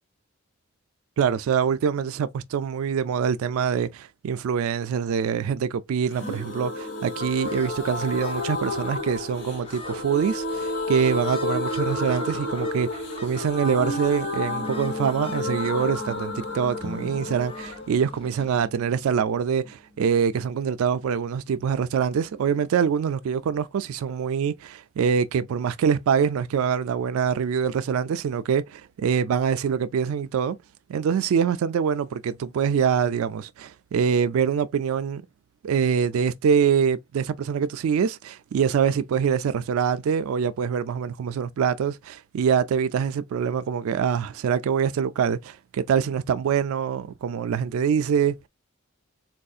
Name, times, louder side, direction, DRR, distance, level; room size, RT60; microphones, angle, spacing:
voice 1, 1.2-28.6 29.0-30.6 30.9-35.2 35.6-48.5, right 7 dB, 80° right, 0.3 m, -24 dB
sound 1, 6.1-19.7 20.0-20.1 20.3-20.4, left 2 dB, 55° left, 1.1 m, -31 dB
sound 2, 7.2-18.7, left 3 dB, 25° left, 0.5 m, -47 dB
sound 3, 16.8-20.8, left 1 dB, 20° right, 0.6 m, -44 dB
4.0 x 2.6 x 2.3 m
head